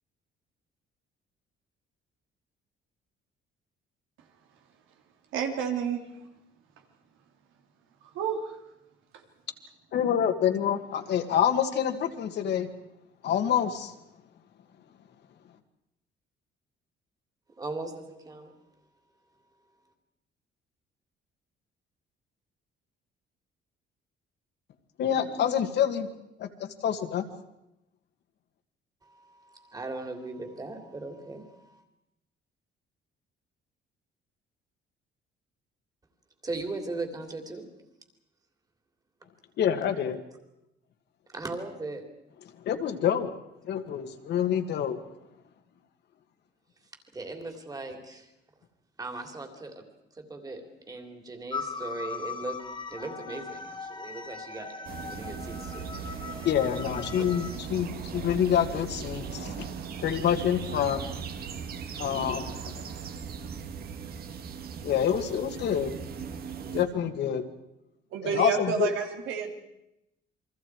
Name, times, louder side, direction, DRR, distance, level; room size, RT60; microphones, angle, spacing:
voice 1, 5.3-6.0 8.1-8.6 68.1-69.5, right 6 dB, 85° right, 4 dB, 3.3 m, -29 dB
voice 2, 9.9-12.7 13.2-13.9 25.0-26.1 26.4-27.2 39.6-40.2 42.7-43.3 43.7-45.0 56.4-59.7 60.0-61.0 62.0-62.6 64.8-65.9 66.7-67.4 68.2-68.9, left 9 dB, 60° left, 6 dB, 2.0 m, -27 dB
voice 3, 17.6-18.5 29.0-31.8 36.4-37.6 41.3-42.0 47.1-48.3 49.0-49.8 50.1-52.6 52.9-54.7 55.1-55.9 57.1-57.3, right 2 dB, 20° right, 5 dB, 3.0 m, -38 dB
sound 1, 51.5-57.6, left 4 dB, 25° left, 1.5 m, -39 dB
sound 2, 54.9-66.9, right 6 dB, 50° right, 1.7 m, -38 dB
29.0 x 23.0 x 4.8 m, 0.86 s
cardioid pair, 160°, 20 cm